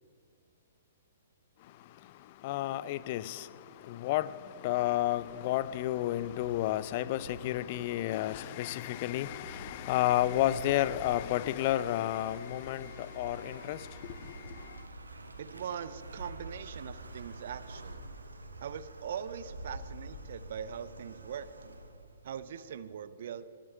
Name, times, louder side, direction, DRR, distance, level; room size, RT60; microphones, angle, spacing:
voice 1, 2.4-3.5 3.9-14.4, left 14 dB, 40° left, 0.4 m, -31 dB
sound 1, 4.8-22.9, right 2 dB, 75° right, 1.3 m, -48 dB
voice 2, 15.4-18.1 18.6-21.8 22.2-23.5, right 8 dB, 50° right, 0.6 m, -41 dB
20.5 x 7.7 x 5.6 m
figure-of-eight pair, 115°, 0 cm